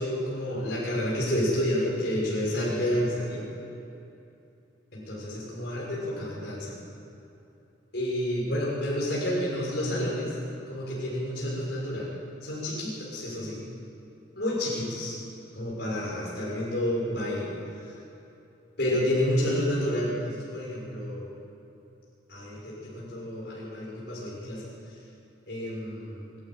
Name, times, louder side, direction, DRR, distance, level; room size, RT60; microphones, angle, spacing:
voice 1, 0.0-3.4 4.9-6.7 7.9-10.3 10.7-12.1 12.4-13.6 14.4-15.2 15.5-17.5 18.8-21.3 22.3-24.7 25.5-26.2, left 1 dB, 55° left, -6 dB, 6.5 m, -29 dB
24.5 x 12.5 x 9.4 m, 2.8 s
head